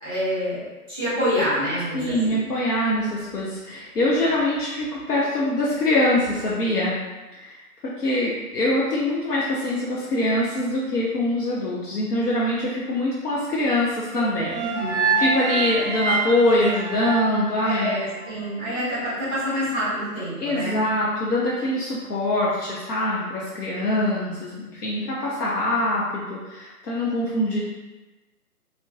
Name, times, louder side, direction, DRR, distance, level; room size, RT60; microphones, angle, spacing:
voice 1, 0.0-2.4 14.5-15.1 17.6-20.8, equal, 10° left, -13 dB, 1.1 m, -27 dB
voice 2, 1.9-7.0 7.3-17.9 20.4-27.6, left 1 dB, 80° left, -6 dB, 0.8 m, -24 dB
sound 1, 14.1-18.3, right 4 dB, 50° right, 0.5 m, -26 dB
2.5 x 2.2 x 3.6 m, 1.2 s
hypercardioid pair, 155°, 46 cm